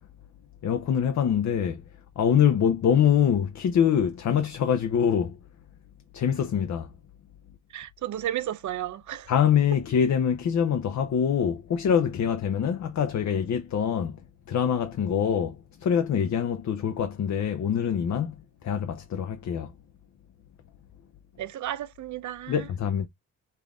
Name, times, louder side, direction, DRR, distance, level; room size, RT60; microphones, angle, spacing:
voice 1, 0.6-1.8 2.2-5.4 6.1-6.9 9.3-14.1 14.5-18.3 18.6-19.7 22.5-23.1, left 8 dB, 60° left, 0.7 m, -24 dB
voice 2, 7.7-9.3 21.4-22.7, right 12 dB, 65° right, 0.6 m, -33 dB
5.5 x 2.6 x 3.5 m
wide cardioid pair, 125°, 31 cm